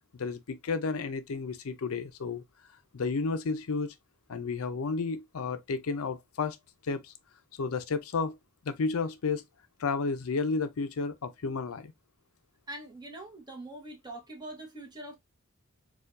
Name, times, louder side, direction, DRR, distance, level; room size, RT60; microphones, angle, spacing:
voice 1, 0.1-2.4 2.9-3.9 4.3-6.6 6.8-7.1 7.6-8.4 8.7-9.4 9.8-11.9, left 4 dB, 75° left, 0.5 m, -32 dB
voice 2, 12.7-15.1, right 1 dB, 20° right, 1.1 m, -43 dB
4.3 x 2.4 x 2.5 m
head